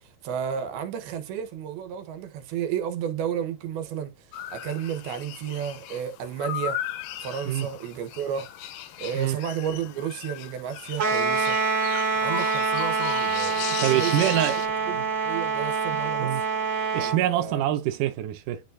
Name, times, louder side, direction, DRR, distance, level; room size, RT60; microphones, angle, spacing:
voice 1, 0.0-4.3 4.5-6.8 7.2-8.5 9.0-11.6 12.2-14.6 14.9-16.5 16.9-17.6, right 8 dB, 85° right, 3.1 m, -32 dB
sound 1, 4.3-14.7, left 12 dB, 75° left, 2.3 m, -37 dB
sound 2, 11.0-17.2, right 4 dB, 40° right, 1.8 m, -26 dB
voice 2, 13.7-14.7 15.9-16.4 16.9-18.6, right 12 dB, 70° right, 2.2 m, -25 dB
10.0 x 4.5 x 2.7 m
omnidirectional pair, 4.3 m